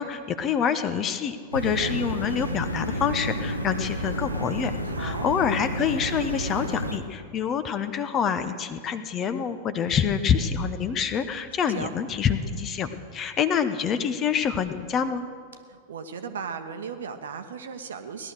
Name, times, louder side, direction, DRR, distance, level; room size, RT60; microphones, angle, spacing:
voice 1, 0.0-4.7 5.0-15.3, left 7 dB, 30° left, 11 dB, 0.9 m, -26 dB
sound 1, 1.5-7.0, equal, 90° left, 1.0 m, -31 dB
voice 2, 4.8-5.3 11.7-11.9 15.7-18.3, right 6 dB, 65° right, 8 dB, 1.0 m, -36 dB
18.0 x 12.0 x 6.4 m, 2.1 s
figure-of-eight pair, 90°, 0 cm